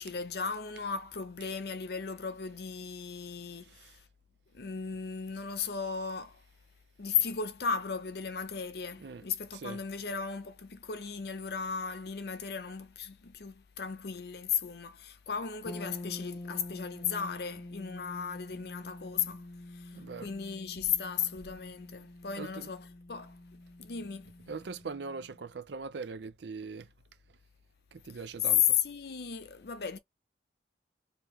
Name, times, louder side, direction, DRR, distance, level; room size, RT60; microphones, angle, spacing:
voice 1, 0.0-4.0 4.5-6.4 7.0-23.4 23.8-24.3 28.1-30.0, left 7 dB, 60° left, 0.6 m, -35 dB
sound 1, 15.7-25.4, left 2 dB, 20° left, 0.7 m, -46 dB
voice 2, 19.9-20.3 22.4-22.5 24.5-26.9 27.9-28.8, right 4 dB, 80° right, 0.5 m, -41 dB
3.5 x 2.8 x 3.1 m
head